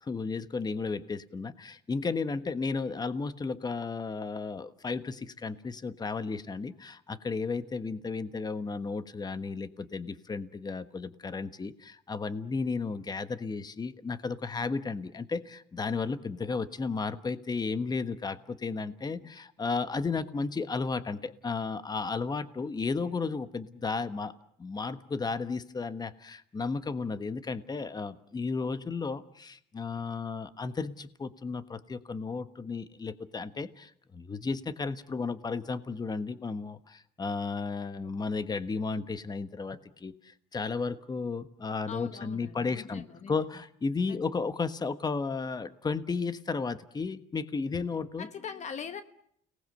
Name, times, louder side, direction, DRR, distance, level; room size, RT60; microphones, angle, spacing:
voice 1, 0.0-24.3 24.6-48.3, left 4 dB, 25° left, 12 dB, 1.3 m, -34 dB
voice 2, 41.9-43.3 44.1-44.2 48.2-49.0, left 7 dB, 45° left, 10 dB, 1.1 m, -41 dB
30.0 x 19.0 x 7.9 m, 0.69 s
cardioid pair, 110°, 17 cm